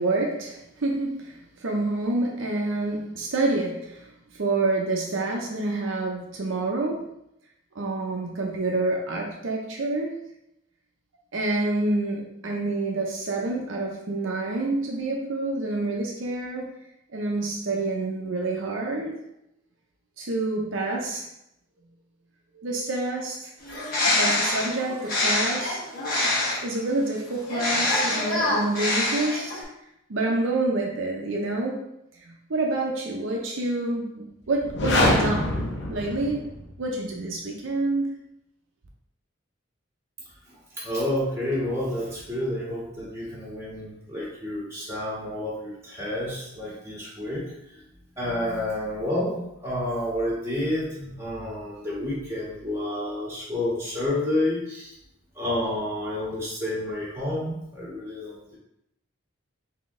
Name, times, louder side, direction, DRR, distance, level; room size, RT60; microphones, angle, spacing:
voice 1, 0.0-7.1 7.7-10.1 11.3-16.7 17.1-19.2 20.2-21.3 22.5-23.5 24.2-25.8 26.6-29.6 30.1-31.9 32.2-35.5 35.9-38.1, right 2 dB, 75° right, -1 dB, 0.6 m, -28 dB
Bird, 23.6-26.8 27.5-29.6, left 2 dB, 45° left, 1.3 m, -25 dB
sound 1, 34.6-36.7, left 1 dB, 60° left, 0.7 m, -24 dB
voice 2, 40.5-47.8 48.2-54.9 55.3-58.6, left 1 dB, 15° right, -7 dB, 1.5 m, -30 dB
3.9 x 2.9 x 3.6 m, 0.81 s
head